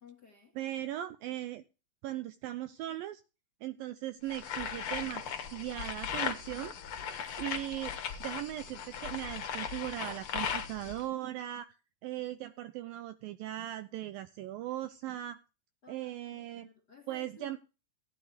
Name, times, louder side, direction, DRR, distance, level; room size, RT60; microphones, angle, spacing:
voice 1, 0.0-0.6 7.0-7.5 15.8-17.6, left 3 dB, 35° left, 1.8 m, -56 dB
voice 2, 0.6-1.6 2.0-3.2 3.6-6.7 7.4-11.8 12.0-15.4 15.9-16.7 17.1-17.6, right 13 dB, 80° right, 2.1 m, -38 dB
sound 1, 4.3-11.0, left 7 dB, 75° left, 1.2 m, -38 dB
16.5 x 10.0 x 3.3 m
omnidirectional pair, 4.7 m